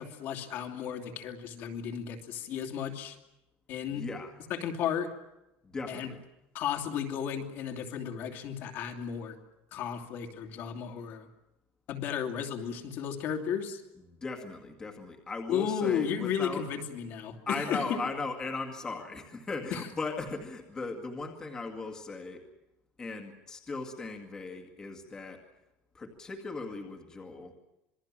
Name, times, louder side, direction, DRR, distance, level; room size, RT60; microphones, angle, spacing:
voice 1, 0.0-3.2 3.7-4.1 4.5-5.1 5.9-6.1 6.5-9.4 9.7-11.3 11.9-13.8 15.5-18.0 19.7-19.8, left 8 dB, 45° left, 4 dB, 2.7 m, -34 dB
voice 2, 3.9-4.3 5.6-6.2 14.1-16.7 17.5-22.4 23.0-25.4 25.9-27.5, left 3 dB, 15° left, 2 dB, 2.1 m, -38 dB
27.0 x 21.5 x 7.5 m, 0.92 s
cardioid pair, 180°, 5 cm